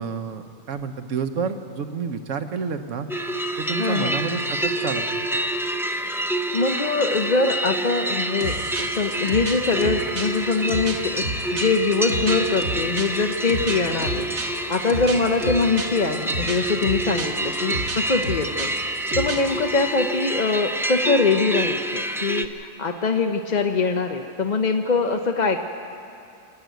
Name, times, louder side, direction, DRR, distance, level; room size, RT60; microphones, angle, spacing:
voice 1, 0.0-3.1 3.6-5.2, right 6 dB, 70° right, 8 dB, 1.3 m, -29 dB
sound 1, 3.1-22.5, right 1 dB, 5° right, 0.3 m, -27 dB
voice 2, 3.8-4.1 6.3-8.6 8.9-14.3 14.7-18.7 19.2-25.6, left 4 dB, 40° left, 4 dB, 0.8 m, -23 dB
sound 2, 8.4-19.6, right 2 dB, 85° right, 2.1 m, -31 dB
27.5 x 11.0 x 9.2 m, 2.5 s
omnidirectional pair, 1.4 m